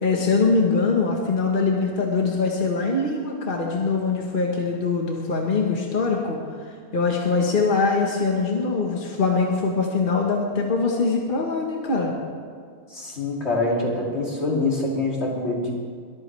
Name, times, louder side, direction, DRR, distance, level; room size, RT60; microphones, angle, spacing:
voice 1, 0.0-6.6 6.9-12.1, left 4 dB, 50° left, 0 dB, 1.6 m, -23 dB
voice 2, 12.9-15.7, left 2 dB, 80° left, -3 dB, 3.0 m, -25 dB
22.0 x 13.5 x 3.4 m, 2.1 s
omnidirectional pair, 1.1 m